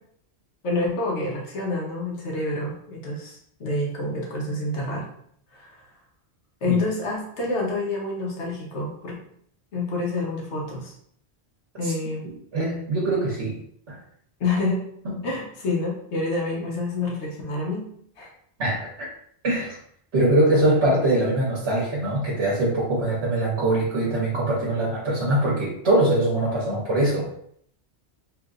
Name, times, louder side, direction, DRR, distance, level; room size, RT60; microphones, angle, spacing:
voice 1, 0.6-5.1 5.5-5.8 6.6-9.2 9.7-10.9 11.8-12.3 14.4-14.8 15.2-17.9 18.2-18.3, left 2 dB, 80° left, -2 dB, 1.1 m, -28 dB
voice 2, 12.5-13.6 13.9-14.0 15.0-15.1 18.6-19.1 19.4-19.8 20.1-27.3, right 1 dB, 70° right, -6 dB, 1.2 m, -22 dB
3.0 x 2.8 x 2.4 m, 0.67 s
omnidirectional pair, 1.1 m